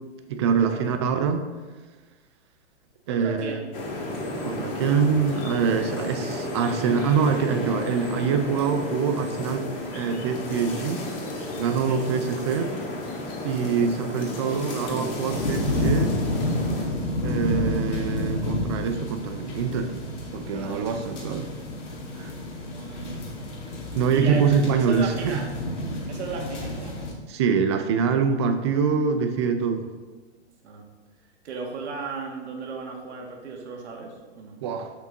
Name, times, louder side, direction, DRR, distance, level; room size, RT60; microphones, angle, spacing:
voice 1, 0.3-1.5 3.1-3.6 4.4-11.1 11.6-12.7 13.4-16.2 17.2-19.9 20.3-21.5 22.1-22.3 23.9-25.4 27.3-29.9 34.6-34.9, right 6 dB, 25° right, 7 dB, 0.4 m, -24 dB
voice 2, 3.1-3.6 5.8-5.9 11.9-12.1 20.5-20.9 22.7-23.3 24.1-24.4 24.9-25.5 26.1-27.0 30.6-30.9 31.4-34.6, right 5 dB, 65° right, 1 dB, 1.8 m, -35 dB
sound 1, 3.7-16.9, left 2 dB, 50° left, 2.4 m, -32 dB
sound 2, 15.3-27.1, left 1 dB, 80° left, 1.9 m, -30 dB
6.6 x 6.0 x 3.9 m, 1.3 s
hypercardioid pair, 145°, 36 cm